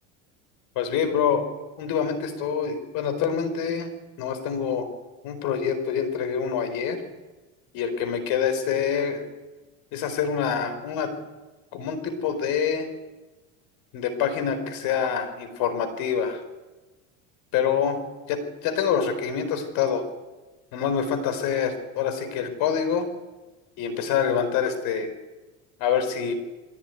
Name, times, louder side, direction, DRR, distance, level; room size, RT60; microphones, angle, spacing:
voice 1, 0.8-1.5 1.8-3.9 4.2-4.9 5.2-7.0 7.7-9.2 9.9-11.1 11.7-12.9 13.9-16.4 17.5-18.0 18.3-20.0 20.7-23.1 23.8-25.1 25.8-26.3, left 7 dB, 65° left, 10 dB, 4.5 m, -26 dB
22.0 x 17.0 x 9.4 m, 1.2 s
supercardioid pair, 110°, 36 cm